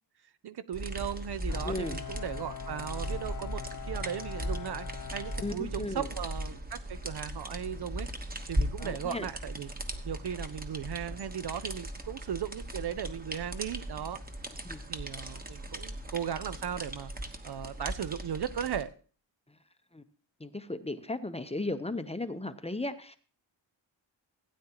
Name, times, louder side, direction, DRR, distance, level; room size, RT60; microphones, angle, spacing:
voice 1, 0.4-4.9 5.1-8.1 8.5-9.7 10.0-14.2 14.9-17.1 17.4-18.9, right 9 dB, 60° right, 13 dB, 0.6 m, -37 dB
sound 1, 0.7-18.8, equal, 20° right, 1.1 m, -38 dB
Bowed string instrument, 1.5-6.3, left 9 dB, 45° left, 0.5 m, -43 dB
voice 2, 1.6-2.0 5.4-6.1 8.8-9.3 14.6-14.8 19.9-20.0 20.4-23.2, left 2 dB, 15° left, 10 dB, 0.7 m, -36 dB
16.5 x 8.9 x 2.9 m, 0.42 s
cardioid pair, 85°, 46 cm